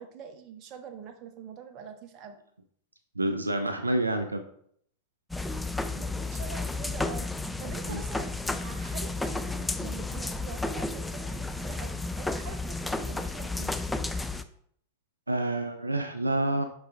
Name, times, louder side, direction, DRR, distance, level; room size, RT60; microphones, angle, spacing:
voice 1, 0.0-2.4 5.9-7.3 7.6-13.7, right 6 dB, 40° right, 8 dB, 0.7 m, -45 dB
voice 2, 3.2-4.4 7.9-8.0 15.3-16.6, right 1 dB, 80° right, 7 dB, 0.4 m, -28 dB
sound 1, 5.3-14.4, left 2 dB, 5° left, 0.3 m, -32 dB
11.0 x 4.0 x 2.3 m, 0.65 s
figure-of-eight pair, 90°, 0 cm